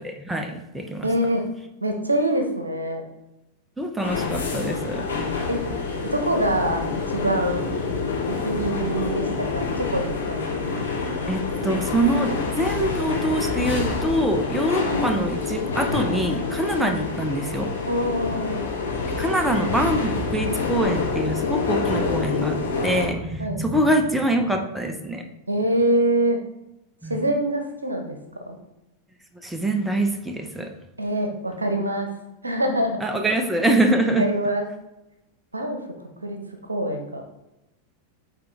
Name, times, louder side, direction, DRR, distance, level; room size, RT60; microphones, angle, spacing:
voice 1, 0.0-1.1 3.8-5.0 11.3-17.7 19.2-25.3 27.0-27.2 29.4-30.7 33.0-34.3, right 1 dB, 5° right, 5 dB, 0.6 m, -24 dB
voice 2, 1.0-1.4 1.8-3.0 5.5-5.6 6.1-6.8 7.1-7.7 8.3-10.4 16.8-17.0 17.9-18.6 23.4-23.6 25.5-26.4 27.1-28.2 28.4-28.6 31.0-32.1 32.4-33.1 34.2-34.6 35.5-35.8 36.2-36.4 36.7-37.2, right 1 dB, 80° right, 5 dB, 0.8 m, -24 dB
sound 1, 4.0-23.1, left 4 dB, 70° left, 1.4 m, -27 dB
8.8 x 3.5 x 3.3 m, 0.95 s
figure-of-eight pair, 90°, 0 cm